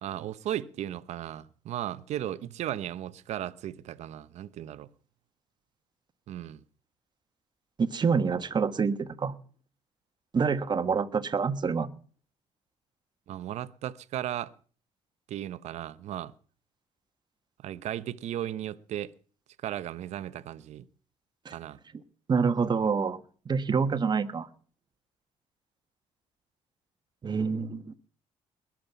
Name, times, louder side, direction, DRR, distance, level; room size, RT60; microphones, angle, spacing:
voice 1, 0.0-4.9 6.3-6.6 13.3-14.5 15.3-16.3 17.6-19.1 19.6-20.9 21.5-21.8, right 12 dB, 70° right, 0.9 m, -36 dB
voice 2, 7.8-9.3 10.3-11.9 21.4-21.5 22.3-23.2 23.4-24.5 27.2-27.9, right 5 dB, 40° right, 1.4 m, -27 dB
21.5 x 7.5 x 8.3 m
cardioid pair, 85°, 12 cm